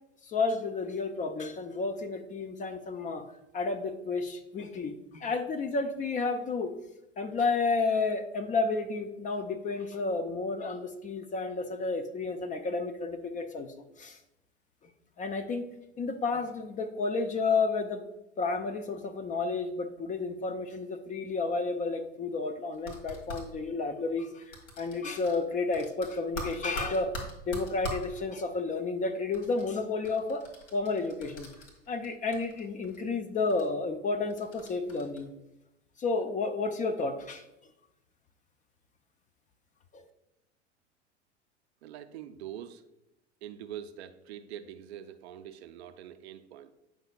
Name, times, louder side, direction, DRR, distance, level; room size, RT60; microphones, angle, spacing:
voice 1, 0.2-3.2 3.5-6.7 7.2-13.7 14.0-14.2 15.2-15.7 16.0-18.0 18.4-27.1 27.5-30.4 30.7-31.5 31.9-35.3 36.0-37.4 39.9-40.0, left 3 dB, 20° left, 7 dB, 0.5 m, -31 dB
sound 1, 22.7-23.4 24.5-25.4 25.7-28.1 29.3-32.1 32.3-33.0 33.5-33.6 34.3-35.2, equal, 70° left, 1.8 m, -41 dB
voice 2, 41.8-42.8 43.4-46.7, right 10 dB, 60° right, 10 dB, 0.6 m, -44 dB
8.8 x 5.6 x 2.3 m, 0.91 s
figure-of-eight pair, 80°, 36 cm